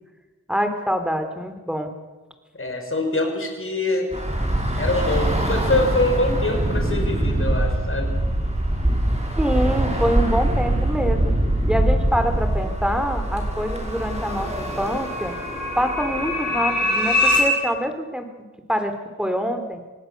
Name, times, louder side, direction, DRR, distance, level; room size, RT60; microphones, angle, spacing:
voice 1, 0.5-1.9 9.4-11.2 11.7-15.3 15.8-18.3 18.7-19.8, equal, 5° right, 7 dB, 3.6 m, -25 dB
voice 2, 2.5-4.1 4.8-8.2, left 2 dB, 45° left, 3 dB, 5.2 m, -24 dB
Bus / Traffic noise roadway noise, 4.1-16.6, right 1 dB, 20° right, 5.7 m, -23 dB
sound 1, 13.1-17.4, left 2 dB, 70° left, 7.3 m, -25 dB
26.0 x 18.5 x 6.9 m, 1.2 s
cardioid pair, 55°, 30 cm